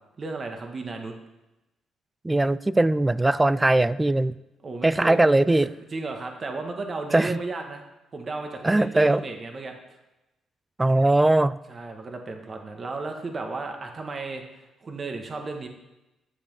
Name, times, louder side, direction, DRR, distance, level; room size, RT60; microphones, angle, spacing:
voice 1, 0.2-1.1 4.6-5.2 5.5-5.6 5.9-7.8 8.1-9.7 11.7-15.7, right 3 dB, 40° right, 4 dB, 1.4 m, -34 dB
voice 2, 2.2-4.3 4.8-5.7 7.1-7.4 8.6-9.2 10.8-11.6, right 2 dB, 15° right, 18 dB, 0.3 m, -20 dB
11.0 x 7.1 x 5.4 m, 0.98 s
cardioid pair, 90°, 0 cm